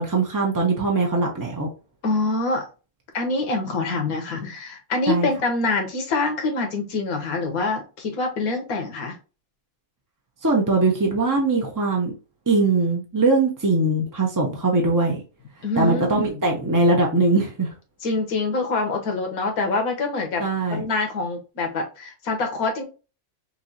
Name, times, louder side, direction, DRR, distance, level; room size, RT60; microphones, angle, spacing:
voice 1, 0.0-1.7 5.1-5.3 10.4-12.1 12.5-15.2 15.8-17.7 20.4-20.8, right 3 dB, 25° right, 0 dB, 0.4 m, -21 dB
voice 2, 2.0-2.7 3.1-9.2 15.6-16.4 18.0-20.4 20.7-22.8, left 3 dB, 80° left, 3 dB, 1.5 m, -25 dB
5.8 x 2.7 x 2.7 m, 0.33 s
omnidirectional pair, 1.5 m